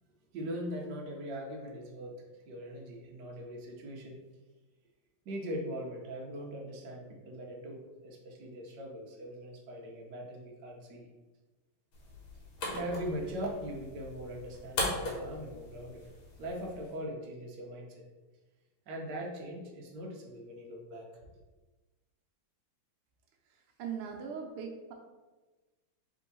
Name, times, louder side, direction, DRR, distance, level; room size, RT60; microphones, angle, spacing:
voice 1, 0.3-4.2 5.2-11.1 12.7-16.0 16.4-18.0 18.9-21.1, equal, 60° right, -1 dB, 1.2 m, -41 dB
sound 1, 11.9-16.9, left 2 dB, 75° left, 2.0 m, -39 dB
voice 2, 23.5-24.9, right 6 dB, 85° right, 1 dB, 1.6 m, -40 dB
3.7 x 3.5 x 3.9 m, 1.2 s
omnidirectional pair, 2.4 m